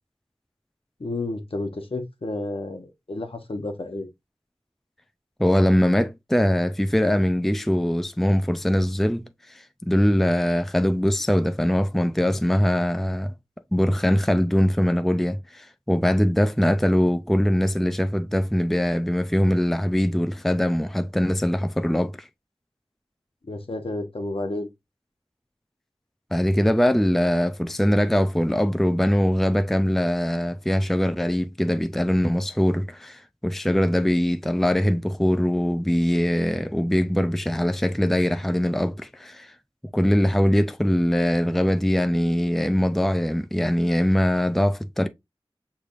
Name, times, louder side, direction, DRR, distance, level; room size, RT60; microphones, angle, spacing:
voice 1, 1.0-4.1 23.5-24.7, left 2 dB, 65° left, 1.1 m, -31 dB
voice 2, 5.4-9.3 9.5-13.3 13.7-22.3 26.3-39.5 39.9-45.1, equal, 5° left, 0.4 m, -22 dB
6.4 x 3.3 x 2.5 m
wide cardioid pair, 40°, 10 cm